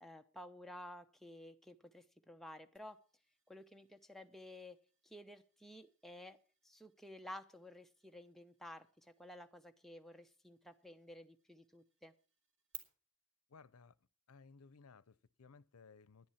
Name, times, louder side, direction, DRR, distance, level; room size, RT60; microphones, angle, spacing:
voice 1, 0.0-3.0 3.5-4.8 5.0-6.4 6.6-12.1, left 1 dB, ahead, 0.8 m, -53 dB
sound 1, 2.8-12.8, right 7 dB, 60° right, 2.2 m, -62 dB
voice 2, 13.5-14.0 14.3-16.3, left 4 dB, 90° left, 0.6 m, -60 dB
10.5 x 10.5 x 5.7 m
head